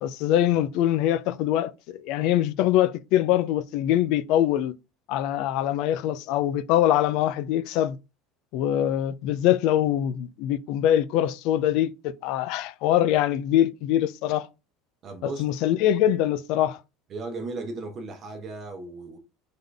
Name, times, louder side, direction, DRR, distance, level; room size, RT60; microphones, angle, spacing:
voice 1, 0.0-4.7 5.1-8.0 8.5-14.5 15.2-16.8, left 12 dB, 60° left, 0.4 m, -23 dB
voice 2, 15.0-15.4 17.1-19.2, right 3 dB, 35° right, 0.9 m, -36 dB
3.7 x 3.7 x 3.4 m
cardioid pair, 145°, 0 cm